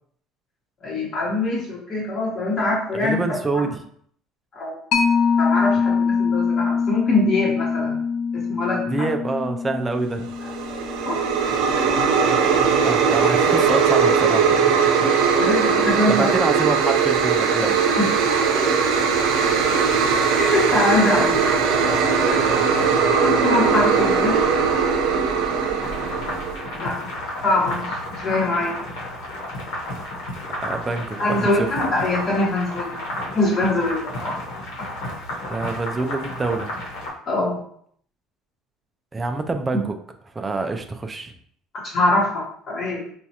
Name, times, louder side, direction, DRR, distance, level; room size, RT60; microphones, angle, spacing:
voice 1, 0.8-3.2 3.5-3.6 4.5-4.8 5.4-8.0 8.3-9.1 11.0-11.2 15.0-15.1 15.4-16.3 18.0-18.1 20.4-21.4 21.8-21.9 22.3-22.4 22.8-22.9 23.2-24.4 26.8-27.1 27.4-28.8 31.2-32.9 33.3-34.4 37.3-37.6 39.7-39.8 41.8-43.0, left 2 dB, 35° left, -5 dB, 1.0 m, -23 dB
voice 2, 3.0-3.7 8.9-10.3 12.8-14.8 16.1-17.8 30.6-31.7 35.5-36.7 39.1-39.9 40.4-41.3, right 3 dB, 15° right, 6 dB, 0.3 m, -26 dB
Mallet percussion, 4.9-12.0, left 5 dB, 50° left, 0.5 m, -24 dB
sound 1, 10.3-26.7, right 6 dB, 75° right, 0.6 m, -19 dB
sound 2, 25.8-37.1, left 1 dB, 85° left, 1.2 m, -32 dB
4.3 x 2.3 x 2.8 m, 0.62 s
cardioid pair, 155°, 0 cm